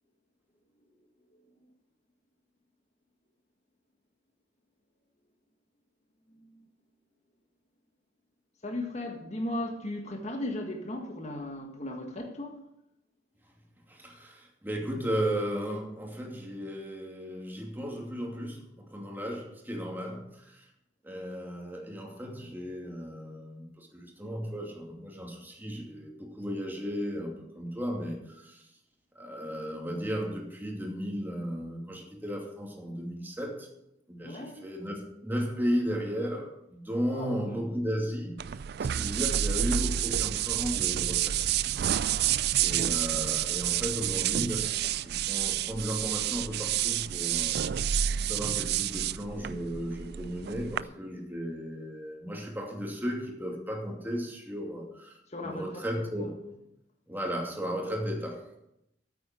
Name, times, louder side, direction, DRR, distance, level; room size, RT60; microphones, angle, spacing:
voice 1, 1.3-1.7 6.3-6.7 8.6-12.6 34.2-34.7 37.1-37.4 55.3-56.3, left 1 dB, 40° left, 1.7 m, -37 dB
voice 2, 13.9-20.7 21.0-28.7 29.1-33.7 34.1-38.3 38.8-41.4 42.6-47.6 48.2-56.3 57.1-58.4, equal, 10° right, 2.6 m, -35 dB
sound 1, 38.4-50.8, right 11 dB, 60° right, 0.4 m, -29 dB
9.2 x 8.7 x 7.8 m
head